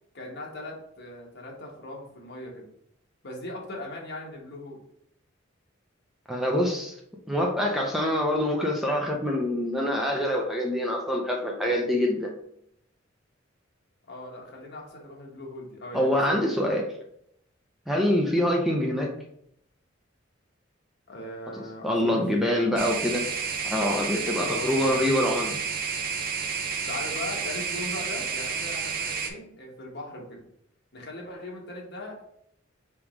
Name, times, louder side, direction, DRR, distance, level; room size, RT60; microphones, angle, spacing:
voice 1, 0.1-2.7 3.2-4.8 14.1-16.8 17.9-18.1 21.1-22.5 24.3-25.0 26.9-30.4 30.9-32.2, left 1 dB, 60° left, -1 dB, 1.1 m, -39 dB
voice 2, 6.3-6.9 7.3-12.3 15.9-16.8 17.9-19.1 21.8-23.2 23.6-25.6, left 1 dB, ahead, -1 dB, 0.5 m, -25 dB
sound 1, 22.8-29.3, right 6 dB, 50° right, 0.6 m, -31 dB
3.5 x 3.0 x 4.8 m, 0.73 s
head